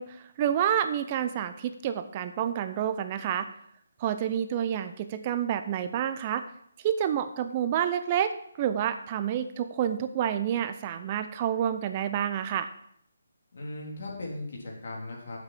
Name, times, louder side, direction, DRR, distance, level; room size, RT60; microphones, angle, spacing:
voice 1, 0.0-3.5 4.0-6.4 6.8-12.7, right 9 dB, 30° right, 10 dB, 0.6 m, -29 dB
voice 2, 13.5-15.4, left 2 dB, 60° left, -1 dB, 3.5 m, -38 dB
7.5 x 6.1 x 7.6 m, 0.70 s
figure-of-eight pair, 150°, 0 cm